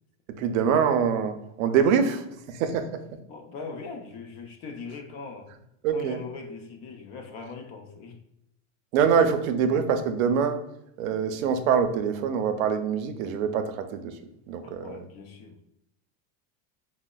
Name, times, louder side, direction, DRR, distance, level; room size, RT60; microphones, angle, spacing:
voice 1, 0.4-3.0 5.8-6.2 8.9-10.6 11.0-14.1 14.5-14.9, right 7 dB, 80° right, 8 dB, 0.6 m, -24 dB
voice 2, 3.3-5.5 5.9-8.2 14.6-15.6, left 4 dB, 40° left, 4 dB, 0.5 m, -40 dB
4.7 x 2.0 x 2.3 m, 0.78 s
supercardioid pair, 145°, 40 cm